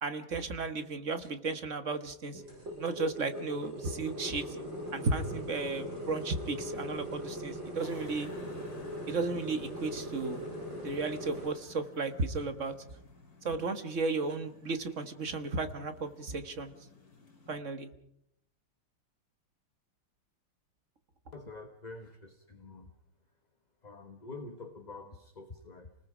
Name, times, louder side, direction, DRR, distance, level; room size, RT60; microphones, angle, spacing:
voice 1, 0.0-2.4 2.8-4.6 4.9-8.3 9.1-10.4 10.8-12.7 13.4-16.7 17.5-17.9, right 3 dB, 40° right, 9 dB, 1.4 m, -34 dB
sound 1, 2.3-11.5, equal, 60° right, 7.7 m, -40 dB
sound 2, 7.8-17.6, left 3 dB, 45° left, 3.7 m, -55 dB
voice 2, 21.3-22.9 23.8-26.0, left 3 dB, 25° left, 5 dB, 1.0 m, -47 dB
29.5 x 19.5 x 5.0 m, 0.76 s
omnidirectional pair, 2.4 m